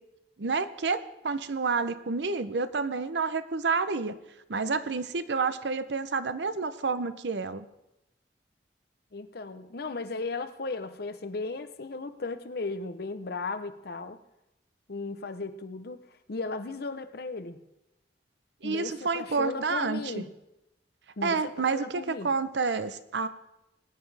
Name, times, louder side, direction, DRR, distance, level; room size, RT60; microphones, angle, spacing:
voice 1, 0.4-4.2 4.5-7.7 18.6-20.1 21.2-23.3, right 4 dB, 75° right, 0.7 m, -29 dB
voice 2, 9.1-14.2 14.9-17.6 18.6-20.3 21.2-22.3, left 3 dB, 60° left, 0.8 m, -36 dB
19.5 x 9.3 x 3.4 m
head